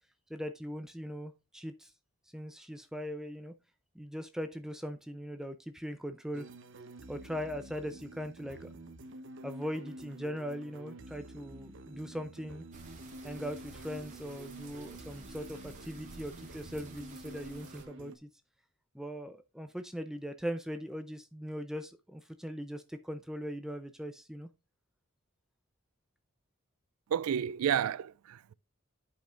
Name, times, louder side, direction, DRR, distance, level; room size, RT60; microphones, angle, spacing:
voice 1, 0.3-1.9 2.3-3.5 4.0-6.5 7.1-8.7 9.4-12.6 13.2-18.3 18.9-24.5, equal, 5° right, 0.5 m, -40 dB
sound 1, 6.3-18.2, right 1 dB, 60° right, 0.9 m, -49 dB
sound 2, 12.7-17.9, right 3 dB, 40° right, 2.5 m, -52 dB
voice 2, 27.1-28.5, right 8 dB, 90° right, 0.4 m, -31 dB
12.0 x 5.4 x 2.5 m
head